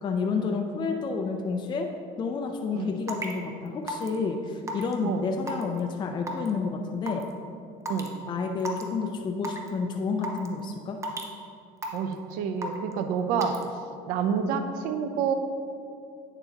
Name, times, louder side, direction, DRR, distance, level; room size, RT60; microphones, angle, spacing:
voice 1, 0.0-1.9 2.2-7.3 8.3-11.0, left 4 dB, 30° left, 3 dB, 0.5 m, -30 dB
Raindrop / Water tap faucet / Drip, 3.1-3.3 3.9-4.2 4.7-4.9 5.5-5.8 6.3-6.5 7.1-7.2 7.9-8.1 8.6-8.8 9.4-9.7 10.2-10.5 11.0-11.3 11.8-12.1 12.6-12.9 13.4-13.6, equal, 20° right, 0.8 m, -32 dB
voice 2, 11.9-13.6 14.1-15.3, right 7 dB, 75° right, 7 dB, 0.7 m, -28 dB
9.0 x 6.8 x 2.9 m, 2.5 s
cardioid pair, 115°, 15 cm